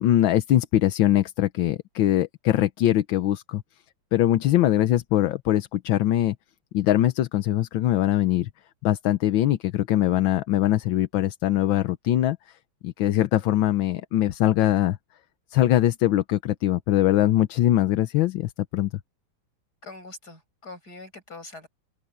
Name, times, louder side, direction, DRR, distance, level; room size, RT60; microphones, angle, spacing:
voice 1, 0.0-3.6 4.1-6.3 6.7-8.5 8.8-12.4 12.8-15.0 15.5-18.9, left 13 dB, 80° left, 1.6 m, -22 dB
voice 2, 19.8-21.7, left 3 dB, 50° left, 8.4 m, -43 dB
omnidirectional pair, 2.2 m